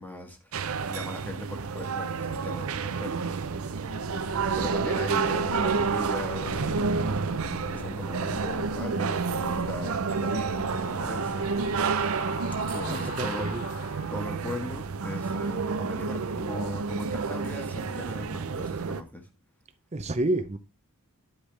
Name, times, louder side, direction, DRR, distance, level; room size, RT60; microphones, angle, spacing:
voice 1, 0.0-3.3 4.2-7.4 7.7-11.5 12.7-13.5 14.1-19.3, left 1 dB, 10° left, 1.4 m, -39 dB
sound 1, 0.5-19.0, right 5 dB, 70° right, 0.6 m, -30 dB
sound 2, 3.4-14.4, left 4 dB, 55° left, 0.7 m, -41 dB
voice 2, 12.7-13.6 19.9-20.6, right 2 dB, 30° right, 0.7 m, -29 dB
10.5 x 4.9 x 3.3 m
head